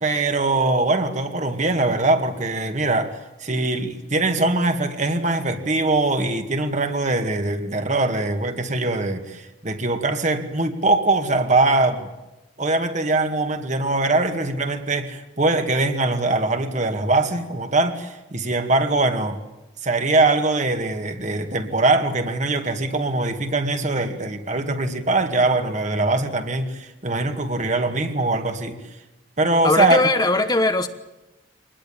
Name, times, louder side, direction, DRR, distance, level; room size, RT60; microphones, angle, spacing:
voice 1, 0.0-12.1 12.6-19.4 19.8-28.8 29.4-30.0, right 2 dB, 40° right, 6 dB, 2.2 m, -22 dB
voice 2, 29.6-30.9, left 2 dB, 20° left, 8 dB, 1.2 m, -19 dB
25.0 x 20.0 x 8.8 m, 0.98 s
head